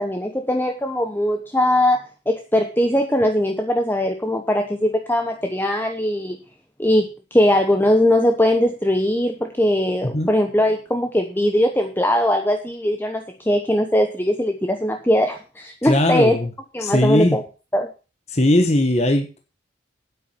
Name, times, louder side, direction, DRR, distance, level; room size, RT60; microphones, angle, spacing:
voice 1, 0.0-6.4 6.8-16.4 16.7-17.4 17.7-17.9, left 1 dB, 10° left, 5 dB, 0.9 m, -20 dB
voice 2, 15.8-16.5 16.8-17.4 18.3-19.4, left 1 dB, 35° left, 5 dB, 1.3 m, -18 dB
9.2 x 8.6 x 5.9 m, 0.33 s
head